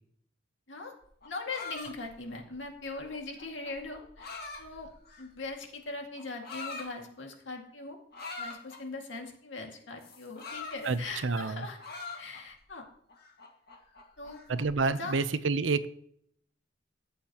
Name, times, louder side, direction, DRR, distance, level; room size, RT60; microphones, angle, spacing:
sound 1, 1.0-5.5 6.2-6.9 8.1-8.8 10.0-11.4 11.8-12.6 13.1-14.8, left 4 dB, 55° left, 1.9 m, -44 dB
voice 1, 1.2-4.9 5.2-8.0 8.4-12.9 14.2-14.4 14.8-15.2, left 3 dB, 75° left, 2 dB, 2.1 m, -41 dB
voice 2, 10.8-11.7 14.5-15.9, right 4 dB, 80° right, 13 dB, 0.7 m, -29 dB
14.0 x 8.3 x 2.9 m, 0.66 s
head